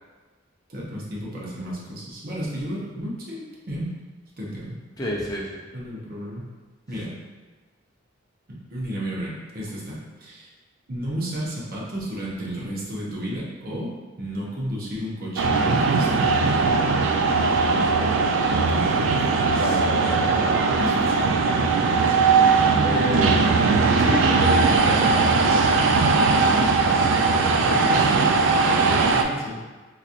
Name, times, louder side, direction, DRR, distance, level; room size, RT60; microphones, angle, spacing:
voice 1, 0.7-3.9 4.4-4.8 5.7-6.5 6.9-7.1 8.5-10.5 10.9-13.9 14.2-16.7 18.7-19.8 20.7-22.4 27.1-28.4 28.8-29.6, equal, 45° right, -4 dB, 0.8 m, -33 dB
voice 2, 5.0-5.6 19.6-20.8 22.8-23.3 24.0-25.5, left 1 dB, 20° left, -4 dB, 0.5 m, -30 dB
sound 1, 15.4-29.2, right 4 dB, 65° right, 0.3 m, -19 dB
3.9 x 3.0 x 2.5 m, 1.3 s
head